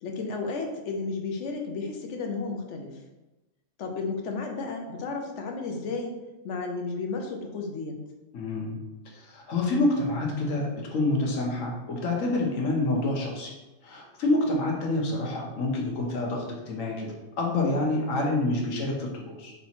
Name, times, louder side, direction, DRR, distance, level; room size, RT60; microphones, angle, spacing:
voice 1, 0.0-3.0 3.8-6.1 6.4-8.0, left 4 dB, 70° left, 2 dB, 1.0 m, -33 dB
voice 2, 8.3-8.8 9.1-13.5 13.8-17.1 17.4-19.5, left 2 dB, 90° left, -1 dB, 1.3 m, -27 dB
3.4 x 2.9 x 4.2 m, 1.1 s
omnidirectional pair, 1.3 m